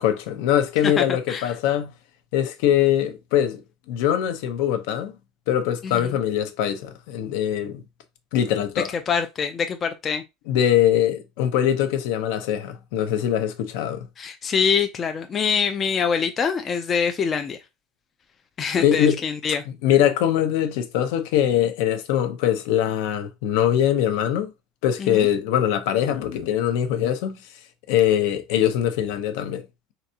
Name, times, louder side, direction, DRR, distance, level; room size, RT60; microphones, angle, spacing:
voice 1, 0.0-1.9 2.3-3.6 3.9-5.2 5.5-7.8 8.3-8.9 10.5-14.0 18.8-19.2 19.8-24.5 24.8-27.4 27.9-29.6, left 10 dB, 65° left, 0.8 m, -22 dB
voice 2, 0.8-1.5 5.8-6.2 9.1-10.2 14.2-17.6 18.6-19.6 25.0-25.3, left 6 dB, 20° left, 0.4 m, -24 dB
4.5 x 4.0 x 2.8 m
cardioid pair, 170°, 0 cm